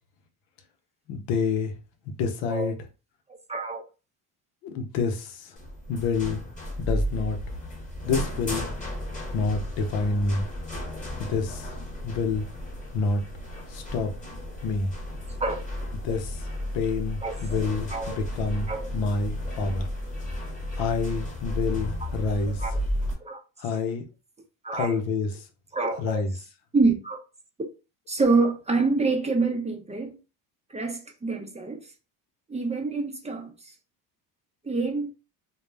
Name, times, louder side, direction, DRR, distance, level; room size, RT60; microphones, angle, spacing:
voice 1, 1.1-1.7 2.1-2.8 4.6-5.6 5.9-6.4 6.8-7.4 8.0-8.7 9.3-10.5 11.2-11.7 12.0-12.4 12.9-13.2 13.7-14.1 14.6-14.9 16.0-16.5 16.7-19.9 20.8-22.6 23.6-24.0 24.7-25.4 26.0-26.3, left 4 dB, 85° left, 0.7 m, -28 dB
voice 2, 3.5-3.8 15.4-15.7 16.1-16.2 17.2-17.4 17.9-18.2 18.7-18.9 22.1-22.2 22.6-22.7 23.2-23.4 24.6-25.0 25.7-26.3 26.7-27.2 28.1-30.1 30.7-31.9 32.5-33.7 34.6-35.1, right 3 dB, 15° right, 0.5 m, -26 dB
sound 1, 5.6-23.1, left 1 dB, 15° left, 1.0 m, -33 dB
2.3 x 2.0 x 3.2 m
supercardioid pair, 90°, 45 cm